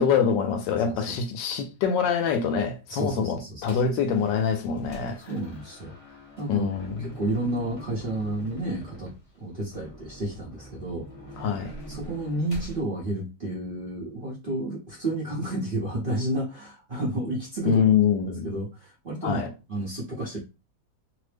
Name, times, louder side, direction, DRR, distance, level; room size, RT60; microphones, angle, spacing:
voice 1, 0.0-5.2 6.5-7.1 11.4-11.7 17.6-18.5 19.2-19.5, left 6 dB, 80° left, 1.2 m, -24 dB
voice 2, 0.8-1.1 2.9-3.8 5.2-6.6 7.0-9.1 9.4-11.1 11.4-11.5 11.9-17.8 18.4-19.4 19.7-20.4, right 1 dB, 40° right, 0.7 m, -31 dB
sound 1, 3.6-4.0 4.4-12.8, right 1 dB, 60° left, 0.3 m, -44 dB
3.1 x 2.0 x 3.3 m
omnidirectional pair, 2.0 m